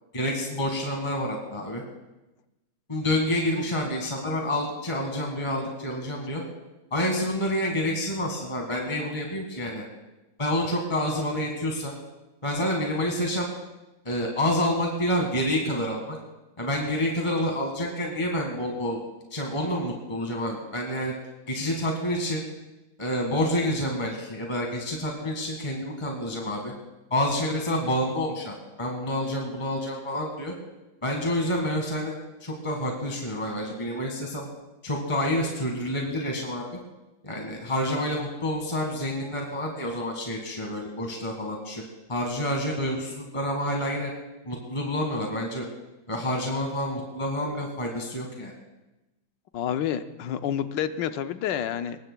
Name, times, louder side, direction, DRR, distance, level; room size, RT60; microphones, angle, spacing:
voice 1, 0.1-1.8 2.9-6.4 6.9-9.8 10.4-11.9 12.4-13.5 14.0-16.2 16.6-19.0 19.3-21.1 21.5-22.4 23.0-26.7 27.1-30.5 31.0-32.1 32.4-34.4 34.8-36.6 37.2-41.8 42.1-44.1 44.4-45.7 46.1-48.5, left 1 dB, 15° left, 0 dB, 1.5 m, -28 dB
voice 2, 49.5-52.1, left 9 dB, 70° left, 10 dB, 1.2 m, -29 dB
23.0 x 20.5 x 2.3 m, 1.0 s
omnidirectional pair, 2.2 m